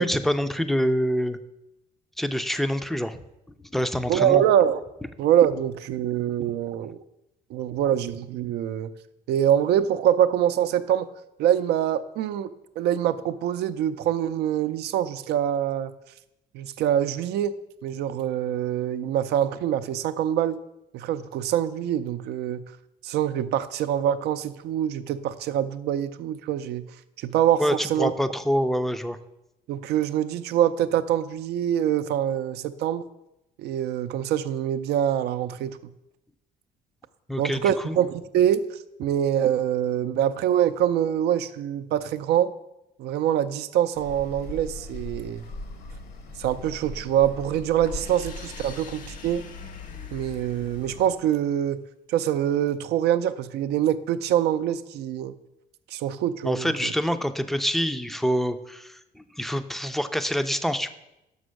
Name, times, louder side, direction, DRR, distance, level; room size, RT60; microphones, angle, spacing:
voice 1, 0.0-1.4 2.2-3.2 3.7-4.4 27.6-29.2 37.3-38.0 56.4-60.9, equal, ahead, 10 dB, 0.4 m, -26 dB
voice 2, 4.1-4.8 5.2-7.0 7.5-8.9 9.3-11.1 11.4-15.9 16.5-17.5 17.8-20.6 20.9-22.6 23.0-26.8 27.2-27.6 27.9-28.1 29.7-33.0 33.6-35.8 37.4-38.6 39.0-42.5 43.0-45.4 46.4-49.5 50.1-51.8 52.1-55.3 55.9-56.9, right 10 dB, 75° right, 12 dB, 0.5 m, -24 dB
sound 1, 43.9-51.1, left 2 dB, 70° left, 1.1 m, -40 dB
sound 2, 47.8-51.6, left 5 dB, 50° left, 0.7 m, -46 dB
6.1 x 5.5 x 6.3 m, 0.90 s
cardioid pair, 110°, 17 cm